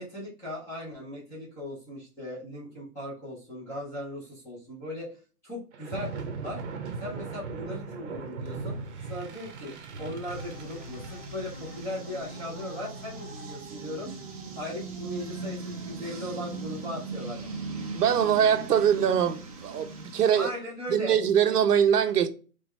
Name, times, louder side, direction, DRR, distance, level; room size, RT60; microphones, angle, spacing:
voice 1, 0.0-6.6 7.0-8.8 9.1-14.1 14.5-17.5 20.3-21.2, left 1 dB, 5° left, 0.9 m, -38 dB
sound 1, 5.7-16.3, right 4 dB, 45° right, 0.9 m, -41 dB
sound 2, 10.0-15.4, equal, 35° left, 1.4 m, -46 dB
sound 3, 10.3-20.5, right 3 dB, 25° right, 0.6 m, -40 dB
voice 2, 17.9-20.5 20.9-22.3, right 8 dB, 85° right, 0.8 m, -23 dB
3.5 x 3.5 x 3.1 m
hypercardioid pair, 170°, 45 cm